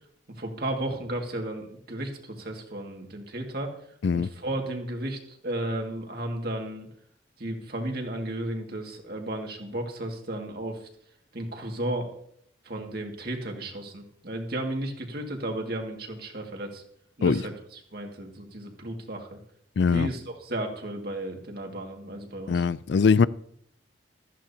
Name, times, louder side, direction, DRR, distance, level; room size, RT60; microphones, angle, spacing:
voice 1, 0.3-3.8 4.1-6.9 7.4-10.9 11.3-12.1 12.6-16.8 17.2-19.4 19.9-22.7, right 1 dB, 50° right, 2.1 m, -34 dB
voice 2, 19.8-20.1 22.5-23.3, left 5 dB, 60° left, 0.4 m, -21 dB
15.0 x 14.0 x 2.9 m
head